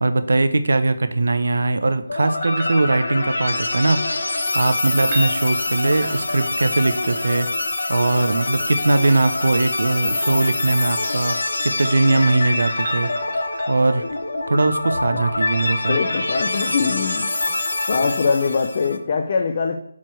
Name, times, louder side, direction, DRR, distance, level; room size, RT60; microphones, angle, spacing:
voice 1, 0.0-13.1 13.7-14.0 14.5-16.0, right 2 dB, 65° right, 10 dB, 0.8 m, -20 dB
sound 1, 2.1-19.0, left 2 dB, 65° left, 1.0 m, -25 dB
sound 2, 2.1-3.4 4.8-6.7 8.8-10.5 11.9-14.0 16.7-16.8, right 1 dB, 30° right, 1.3 m, -37 dB
voice 2, 15.9-17.3 17.9-19.8, left 5 dB, 40° left, 5 dB, 0.6 m, -22 dB
7.2 x 4.5 x 4.6 m, 0.73 s
figure-of-eight pair, 155°, 0 cm